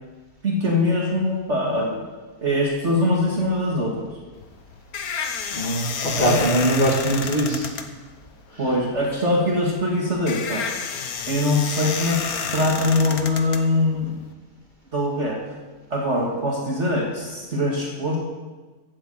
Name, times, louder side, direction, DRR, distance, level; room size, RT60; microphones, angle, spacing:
voice 1, 0.4-2.0 2.4-4.1 6.2-6.4 8.6-10.7 11.3-14.2 14.9-15.4 15.9-18.2, left 1 dB, 50° right, -2 dB, 2.2 m, -22 dB
sound 1, 4.3-14.3, left 6 dB, 75° left, 1.5 m, -31 dB
voice 2, 5.5-7.7, right 1 dB, 30° left, -2 dB, 2.1 m, -21 dB
15.0 x 8.6 x 7.9 m, 1.3 s
omnidirectional pair, 1.6 m